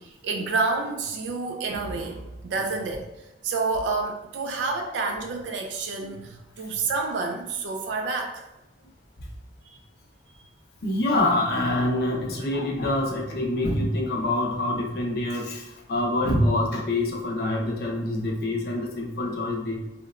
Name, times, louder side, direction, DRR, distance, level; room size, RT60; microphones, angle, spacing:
voice 1, 0.0-8.4, right 3 dB, 75° right, 3 dB, 0.3 m, -29 dB
voice 2, 10.8-19.8, left 1 dB, 60° left, -1 dB, 0.5 m, -26 dB
2.8 x 2.1 x 2.3 m, 0.97 s
head